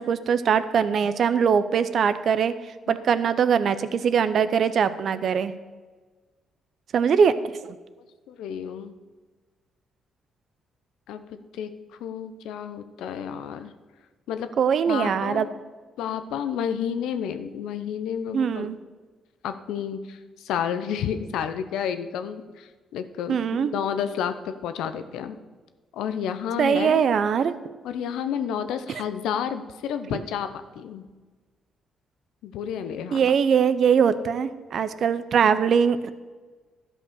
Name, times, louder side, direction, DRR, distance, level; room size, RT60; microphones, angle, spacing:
voice 1, 0.0-2.5 2.9-5.5 6.9-7.8 14.6-15.5 18.3-18.8 23.3-23.7 26.6-27.5 30.1-30.2 33.1-36.1, right 7 dB, 60° right, 13 dB, 0.6 m, -22 dB
voice 2, 8.3-8.9 11.1-11.2 11.5-11.7 12.0-13.7 14.3-14.5 14.9-15.5 16.0-18.7 19.4-25.4 25.9-27.0 27.8-31.0 32.4-33.3, left 8 dB, 85° left, 10 dB, 0.7 m, -31 dB
12.0 x 5.4 x 6.4 m, 1.4 s
cardioid pair, 90°, 0 cm